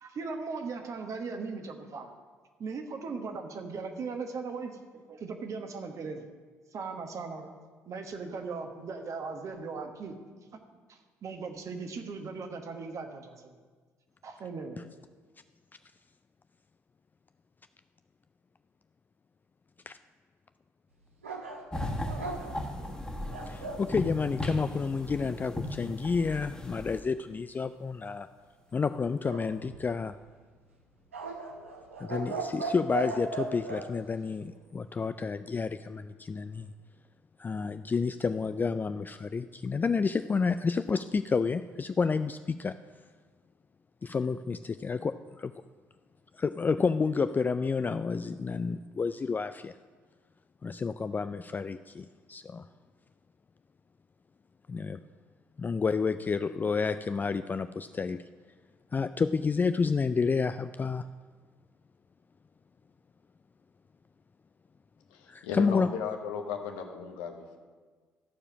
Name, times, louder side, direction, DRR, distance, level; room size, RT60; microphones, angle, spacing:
voice 1, 0.0-2.1 2.6-6.3 6.7-7.5 7.9-10.2 10.9-13.6 14.2-14.8, right 4 dB, 50° right, 6 dB, 1.2 m, -38 dB
sound 1, 21.2-23.9 29.2-30.1 31.1-33.9, right 4 dB, 90° right, 0.7 m, -37 dB
sound 2, 21.7-27.0, left 1 dB, 10° left, 1.6 m, -37 dB
voice 2, 23.5-28.3 28.7-30.2 32.0-36.7 37.4-42.8 44.0-45.5 46.3-49.7 50.6-52.7 54.7-55.0 55.6-58.2 58.9-61.0 65.3-65.9, left 5 dB, 25° left, 11 dB, 0.3 m, -30 dB
voice 3, 65.1-67.6, left 7 dB, 75° left, 5 dB, 0.9 m, -36 dB
13.5 x 4.9 x 6.0 m, 1.5 s
hypercardioid pair, 50°, 7 cm